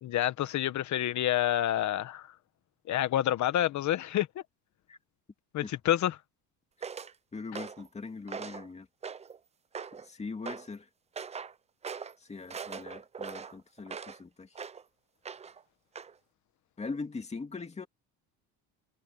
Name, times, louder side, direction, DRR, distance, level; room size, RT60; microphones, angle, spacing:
voice 1, 0.0-2.3 2.9-4.4 5.5-6.2, left 12 dB, 45° left, 1.3 m, -28 dB
sound 1, 6.8-7.1 7.5-7.9 8.3-8.7 9.0-9.4 9.7-10.1 10.5-10.7 11.2-11.5 11.8-12.1 12.5-14.2 14.5-14.8 15.2-15.6 16.0-16.1, right 6 dB, 15° right, 0.5 m, -41 dB
voice 2, 7.3-8.9 9.9-10.9 12.2-14.5 16.8-17.9, left 4 dB, 15° left, 2.3 m, -41 dB
cardioid pair, 150°, 38 cm